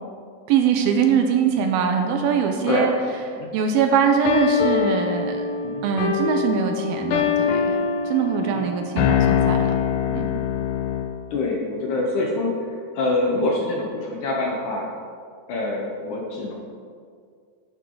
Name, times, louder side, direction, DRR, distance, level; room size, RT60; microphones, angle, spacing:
voice 1, 0.5-2.9 3.3-5.4 5.8-7.8 8.1-9.8 10.1-10.4, right 7 dB, 75° right, 5 dB, 2.4 m, -22 dB
sound 1, 4.2-11.2, left 7 dB, 90° left, 1.8 m, -23 dB
voice 2, 11.3-14.9 15.5-16.5, left 2 dB, 65° left, -1 dB, 2.1 m, -25 dB
11.5 x 10.0 x 3.9 m, 2.2 s
omnidirectional pair, 4.6 m